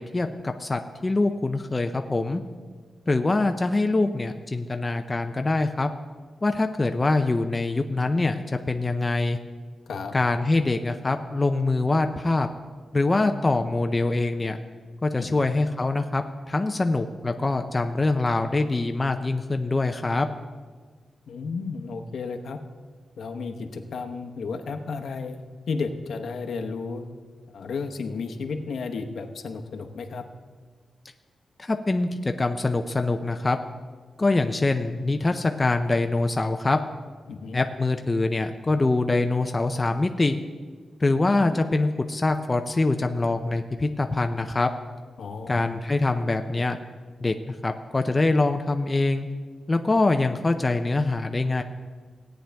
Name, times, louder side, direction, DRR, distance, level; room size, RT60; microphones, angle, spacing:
voice 1, 0.0-2.4 3.1-5.9 6.4-9.4 10.1-12.5 12.9-14.6 15.0-20.3 31.6-33.6 34.2-36.8 37.5-40.4 41.0-44.7 45.5-46.8 47.2-49.3 49.7-51.6, left 2 dB, 20° left, 6 dB, 0.5 m, -24 dB
voice 2, 21.3-22.6 23.2-27.1 27.5-30.2 37.3-37.6 45.2-45.8, left 4 dB, 70° left, 5 dB, 0.9 m, -33 dB
17.0 x 8.9 x 3.4 m, 1.5 s
wide cardioid pair, 135°, 0 cm